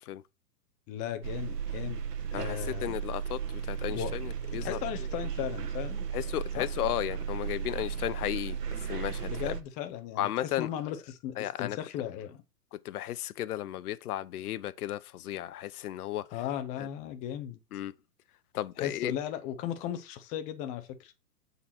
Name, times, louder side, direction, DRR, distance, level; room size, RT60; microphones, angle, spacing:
voice 1, 0.9-2.0 2.3-3.0 3.9-4.1 4.5-6.1 6.6-6.7 9.2-12.4 16.3-17.6 18.8-21.1, left 10 dB, 15° left, 0.5 m, -36 dB
sound 1, 1.2-9.6, right 7 dB, 75° right, 1.3 m, -35 dB
voice 2, 2.3-3.4 3.7-4.3 4.5-4.8 6.1-8.6 8.9-9.5 10.2-10.7 11.4-11.8 12.9-16.2 17.7-17.9 18.5-19.1, left 13 dB, 70° left, 0.7 m, -34 dB
8.4 x 4.0 x 4.3 m
hypercardioid pair, 130°, 48 cm